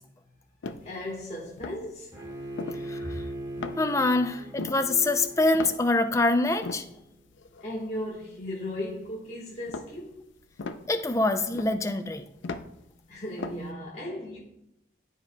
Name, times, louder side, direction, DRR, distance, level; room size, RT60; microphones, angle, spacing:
sound 1, 0.6-1.2 1.5-2.0 2.4-3.3 3.6-4.1 4.4-6.2 6.5-9.1 9.6-12.9 13.2-13.7, left 3 dB, 85° left, 0.5 m, -39 dB
voice 1, 0.8-2.1 3.0-3.1 7.6-10.2 13.1-14.4, left 1 dB, 35° left, 1.3 m, -36 dB
Bowed string instrument, 2.1-7.2, right 1 dB, 20° right, 1.5 m, -40 dB
voice 2, 3.8-6.8 10.9-12.2, left 2 dB, 15° left, 0.4 m, -25 dB
13.5 x 4.8 x 2.2 m
head